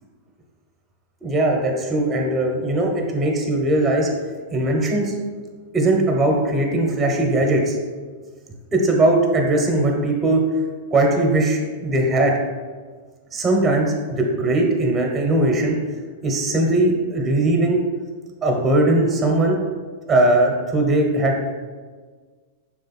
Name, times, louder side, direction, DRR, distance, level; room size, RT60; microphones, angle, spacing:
voice 1, 1.2-4.1 4.5-5.2 5.7-7.7 8.7-10.4 10.9-12.3 13.3-15.8 16.2-17.8 18.4-19.6 20.1-21.4, right 2 dB, 20° right, 1 dB, 1.0 m, -19 dB
6.4 x 3.4 x 4.2 m, 1.5 s
hypercardioid pair, 135°, 0 cm